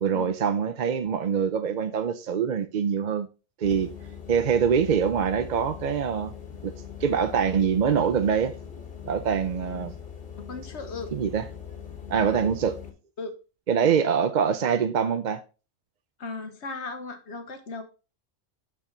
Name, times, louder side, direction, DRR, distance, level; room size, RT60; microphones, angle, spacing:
voice 1, 0.0-3.3 3.6-3.9 4.3-6.3 6.6-6.7 7.0-8.5 9.1-9.9 11.1-11.5 12.1-12.8 13.7-15.4, right 7 dB, 50° right, 0.6 m, -24 dB
sound 1, 3.6-12.9, left 7 dB, 50° left, 1.7 m, -41 dB
voice 2, 10.5-11.1 12.3-12.4 13.2-13.3 13.8-13.9 16.2-17.8, left 3 dB, 65° left, 1.4 m, -36 dB
6.3 x 6.2 x 3.8 m
omnidirectional pair, 1.2 m